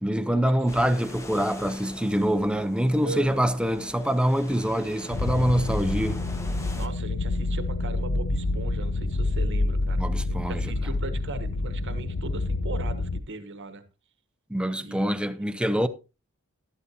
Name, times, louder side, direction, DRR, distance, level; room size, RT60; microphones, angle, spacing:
voice 1, 0.0-6.2 10.0-10.6 14.5-15.9, equal, 5° right, 0.7 m, -25 dB
sound 1, 0.7-6.9, left 1 dB, 15° left, 1.2 m, -42 dB
voice 2, 3.0-3.5 5.5-6.1 6.8-13.8 14.8-15.6, right 3 dB, 55° right, 1.2 m, -39 dB
sound 2, 5.1-13.2, left 2 dB, 80° left, 0.8 m, -28 dB
12.5 x 12.0 x 2.8 m
head